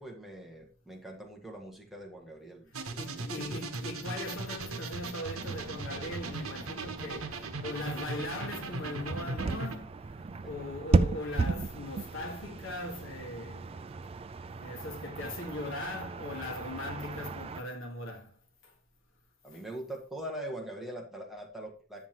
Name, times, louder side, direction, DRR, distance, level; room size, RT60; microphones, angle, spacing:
voice 1, 0.0-3.7 10.4-10.5 19.4-22.1, right 1 dB, ahead, 1.6 m, -43 dB
sound 1, 2.7-9.8, right 3 dB, 80° right, 1.1 m, -38 dB
voice 2, 3.0-13.8 14.6-18.7 19.5-19.6, left 2 dB, 65° left, 1.6 m, -40 dB
sound 2, 5.4-17.6, right 3 dB, 25° right, 0.3 m, -35 dB
9.2 x 7.4 x 2.9 m
head